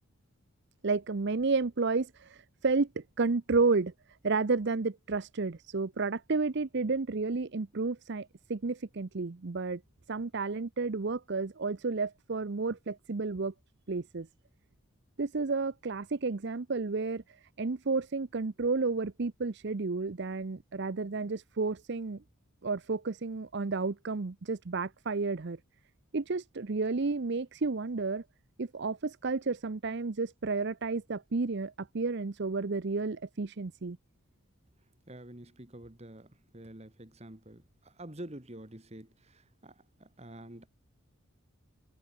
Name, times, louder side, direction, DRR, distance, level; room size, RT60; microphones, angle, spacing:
voice 1, 0.8-3.9 4.2-9.8 10.1-13.5 13.9-14.3 15.2-22.2 22.6-25.6 26.1-28.2 28.6-34.0, right 4 dB, 55° right, 0.6 m, -31 dB
voice 2, 35.1-39.7 40.0-40.7, right 1 dB, 30° right, 1.9 m, -48 dB
head